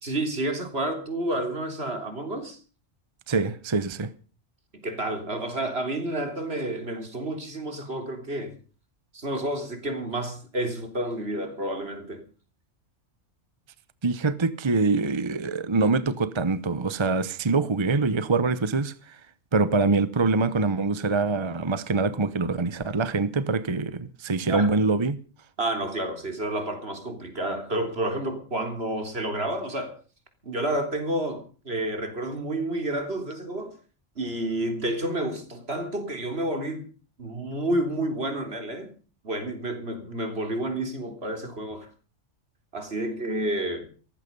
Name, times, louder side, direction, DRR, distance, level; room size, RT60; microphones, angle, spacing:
voice 1, 0.0-2.6 4.7-8.5 9.1-12.2 24.5-24.7 25.6-29.9 30.4-33.7 34.2-36.8 37.2-38.9 39.2-41.9 42.7-43.9, right 1 dB, 55° right, 3.8 m, -30 dB
voice 2, 3.3-4.1 14.0-18.9 19.5-25.2, right 3 dB, 25° right, 0.8 m, -24 dB
18.0 x 15.0 x 5.4 m
omnidirectional pair, 1.3 m